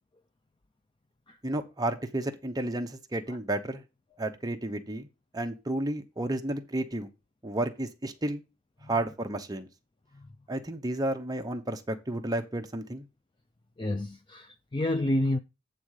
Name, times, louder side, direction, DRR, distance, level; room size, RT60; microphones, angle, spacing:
voice 1, 1.4-3.8 4.2-5.1 5.3-7.1 7.4-8.4 8.9-9.7 10.5-13.0, right 1 dB, 20° right, 0.8 m, -32 dB
voice 2, 13.8-15.4, left 1 dB, 25° left, 0.4 m, -30 dB
8.6 x 3.8 x 6.4 m
head